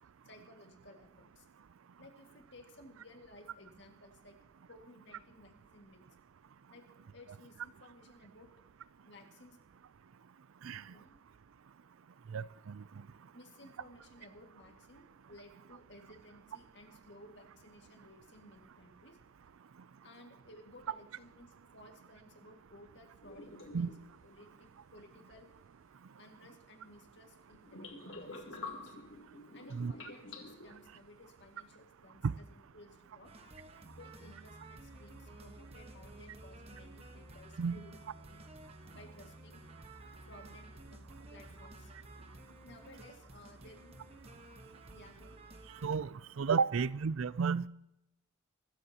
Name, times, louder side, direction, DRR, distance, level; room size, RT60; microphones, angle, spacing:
voice 1, 0.2-1.5 2.0-4.4 4.7-6.0 6.7-8.5 9.0-9.6 10.6-11.2 13.3-19.2 20.0-23.9 24.2-25.5 26.2-29.0 29.5-33.3 34.0-38.4 38.9-39.6 40.3-41.9 42.2-43.9 44.9-45.4, left 1 dB, 55° left, 2.1 m, -57 dB
voice 2, 10.6-10.9 12.3-12.8 23.7-23.9 29.7-29.9 32.2-32.3 37.6-37.8 45.8-47.7, right 5 dB, 80° right, 0.4 m, -32 dB
sound 1, 23.2-24.2 27.6-30.9, left 3 dB, 75° left, 2.7 m, -48 dB
sound 2, 33.2-45.9, right 1 dB, 30° right, 1.3 m, -53 dB
24.5 x 13.5 x 2.9 m
head